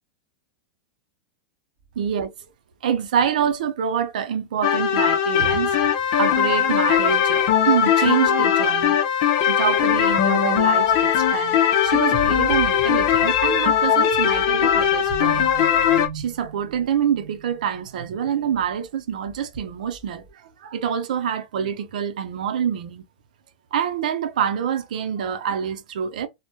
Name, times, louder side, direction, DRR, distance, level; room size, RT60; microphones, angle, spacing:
sound 1, 1.9-2.1 6.5-8.8 9.9-10.2 10.6-11.4 11.8-18.9 19.1-20.3, right 3 dB, 35° right, 1.1 m, -39 dB
voice 1, 2.0-2.3 2.8-5.8 6.2-9.0 9.5-15.5 16.1-23.0 23.7-26.3, right 8 dB, 80° right, 0.5 m, -26 dB
sound 2, 4.6-16.1, left 9 dB, 55° left, 0.5 m, -19 dB
2.1 x 2.1 x 2.9 m
supercardioid pair, 135°, 4 cm